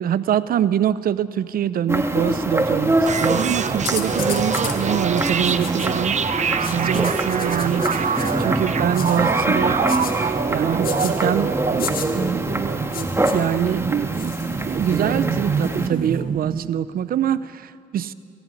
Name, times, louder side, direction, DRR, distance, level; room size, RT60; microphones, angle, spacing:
voice 1, 0.0-6.3 6.6-11.6 13.3-13.8 14.8-18.1, right 10 dB, 70° right, 16 dB, 0.6 m, -24 dB
sound 1, 1.9-15.9, right 1 dB, 15° right, 1.9 m, -25 dB
sound 2, 3.1-16.7, right 6 dB, 50° right, 0.9 m, -25 dB
sound 3, 3.9-4.8 5.1-6.1 6.6-8.4 8.9-9.2 9.9-10.1 10.8-11.1 11.8-12.1 12.9-13.3 14.1-15.0 15.6-16.2, left 8 dB, 75° left, 2.0 m, -34 dB
21.5 x 14.5 x 9.6 m, 2.4 s
supercardioid pair, 60°, 15 cm